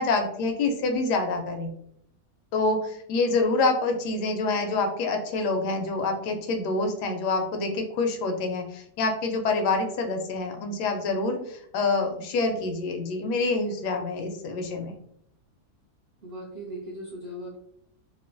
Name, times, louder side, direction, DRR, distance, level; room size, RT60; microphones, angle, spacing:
voice 1, 0.0-1.7 2.5-15.0, left 3 dB, 90° left, 4 dB, 1.2 m, -26 dB
voice 2, 16.2-17.6, right 1 dB, 70° right, -5 dB, 0.6 m, -38 dB
2.9 x 2.1 x 2.5 m, 0.71 s
omnidirectional pair, 1.7 m